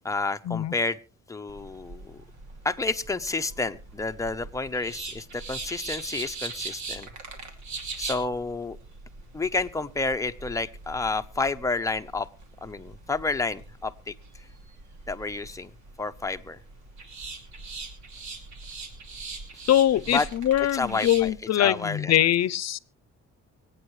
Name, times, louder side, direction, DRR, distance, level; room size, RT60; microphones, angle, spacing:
voice 1, 0.0-1.0 1.3-2.2 2.6-7.1 8.0-8.8 9.3-12.3 12.6-14.1 14.4-14.5 15.1-15.7 16.0-16.6 20.1-20.3 20.7-22.1, left 3 dB, 10° left, 7 dB, 0.8 m, -30 dB
sound 1, 1.5-21.3, right 4 dB, 70° right, 2.8 m, -41 dB
voice 2, 19.7-22.8, left 12 dB, 60° left, 20 dB, 0.7 m, -23 dB
25.0 x 8.9 x 3.2 m, 0.34 s
cardioid pair, 90°, 30 cm